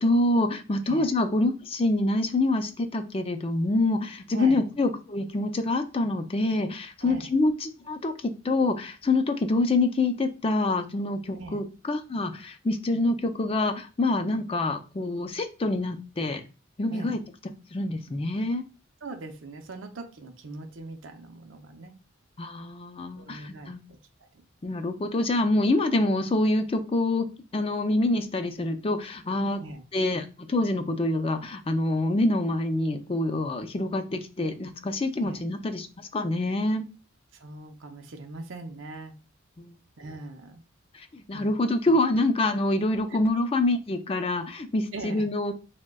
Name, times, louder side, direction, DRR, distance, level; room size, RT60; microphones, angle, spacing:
voice 1, 0.0-16.4 16.8-17.2 17.7-18.6 22.4-23.8 24.6-27.3 27.5-29.6 29.9-36.9 39.6-39.7 40.9-45.6, left 2 dB, 30° left, 7 dB, 0.4 m, -26 dB
voice 2, 4.3-4.7 7.0-7.3 11.3-11.6 16.9-17.2 19.0-22.0 23.1-24.3 29.6-29.8 35.2-35.4 37.3-39.1 40.0-40.6 41.3-41.6 43.1-43.2 44.9-45.2, right 3 dB, 75° right, 5 dB, 0.6 m, -41 dB
6.0 x 2.2 x 2.3 m, 0.32 s
head